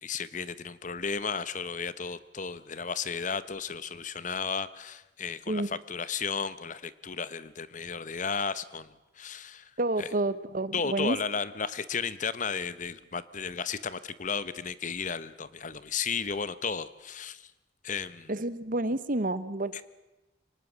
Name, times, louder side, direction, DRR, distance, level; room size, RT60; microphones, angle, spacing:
voice 1, 0.0-8.9 9.2-9.7 10.0-10.1 10.7-17.5 17.8-18.3 19.7-19.8, left 5 dB, 45° left, 16 dB, 0.9 m, -34 dB
voice 2, 9.8-11.2 18.3-19.8, right 2 dB, 50° right, 15 dB, 1.1 m, -29 dB
24.0 x 19.5 x 7.4 m, 0.99 s
head